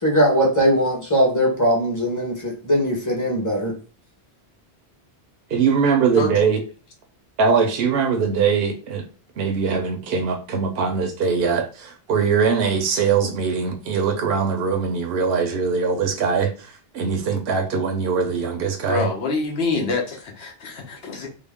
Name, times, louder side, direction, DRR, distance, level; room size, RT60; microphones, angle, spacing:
voice 1, 0.0-3.7, equal, 20° left, 0.9 m, -20 dB
voice 2, 5.5-6.6 7.4-9.0 9.4-16.5 16.9-19.1, right 5 dB, 70° right, 0.8 m, -21 dB
voice 3, 18.9-21.3, left 3 dB, 70° left, 1.2 m, -25 dB
3.7 x 2.1 x 3.5 m
omnidirectional pair, 1.1 m